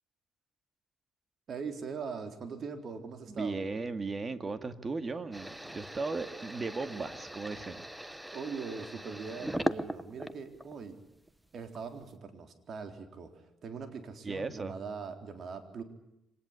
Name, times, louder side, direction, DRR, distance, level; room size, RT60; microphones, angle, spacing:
voice 1, 1.5-3.7 8.3-11.0 11.5-13.3 13.6-15.8, right 5 dB, 55° right, 6 dB, 3.9 m, -41 dB
voice 2, 3.3-7.9 14.2-14.8, right 3 dB, 30° right, 9 dB, 2.1 m, -36 dB
sound 1, 5.3-10.8 11.3-12.0, right 1 dB, 5° right, 1.2 m, -39 dB
25.5 x 19.5 x 10.0 m, 0.85 s
cardioid pair, 90°, 0 cm